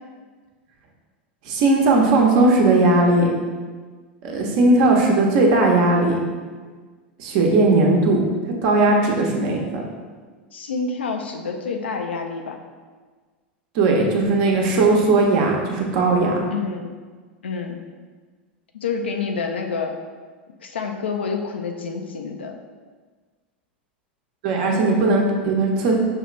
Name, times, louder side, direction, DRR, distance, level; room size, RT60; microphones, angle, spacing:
voice 1, 1.5-3.3 4.2-6.2 7.2-8.2 8.6-9.8 13.7-16.5 24.4-25.9, right 2 dB, 60° right, 0 dB, 0.9 m, -18 dB
voice 2, 10.5-12.6 16.5-16.9 17.4-17.8 18.7-19.9 20.6-22.5, left 5 dB, 85° left, 4 dB, 0.5 m, -28 dB
5.6 x 2.4 x 3.1 m, 1.5 s
hypercardioid pair, 95°, 6 cm